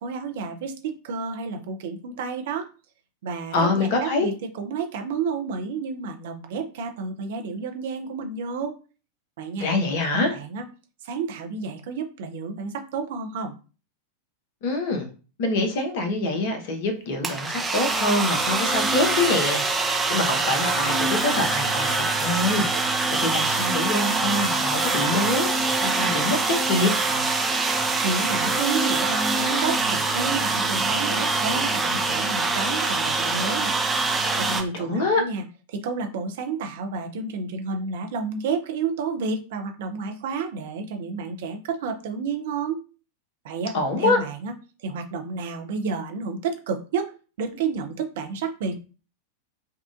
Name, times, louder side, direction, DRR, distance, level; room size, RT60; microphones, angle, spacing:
voice 1, 0.0-2.7 3.2-8.7 9.4-9.7 10.1-10.6 11.0-13.5 28.0-33.7 34.4-35.4 35.7-42.8 43.4-44.5 44.8-47.1 47.4-48.8, right 5 dB, 55° right, 5 dB, 0.6 m, -30 dB
voice 2, 3.5-4.3 9.6-10.4 14.6-15.1 15.4-25.5 25.8-26.9 34.7-35.2 43.7-44.2, left 2 dB, 50° left, 5 dB, 1.0 m, -25 dB
sound 1, 17.2-34.6, right 3 dB, 10° right, 0.7 m, -24 dB
5.4 x 2.4 x 2.5 m, 0.36 s
figure-of-eight pair, 90°, 0 cm